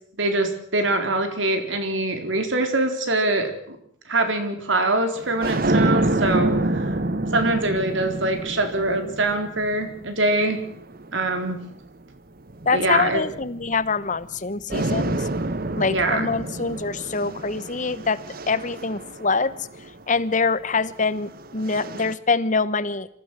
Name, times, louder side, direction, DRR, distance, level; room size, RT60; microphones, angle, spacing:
voice 1, 0.2-3.8 4.1-6.9 7.3-10.6 11.1-11.6 12.7-13.2 15.9-16.3, right 2 dB, 75° right, 6 dB, 4.0 m, -23 dB
sound 1, 5.2-11.7 12.5-14.4 14.7-20.0 21.0-22.1, right 2 dB, 50° right, 1.1 m, -28 dB
voice 2, 12.7-15.3 15.8-18.2 18.5-19.5 20.1-23.1, left 4 dB, 40° left, 16 dB, 1.0 m, -24 dB
26.0 x 15.0 x 8.1 m, 0.68 s
head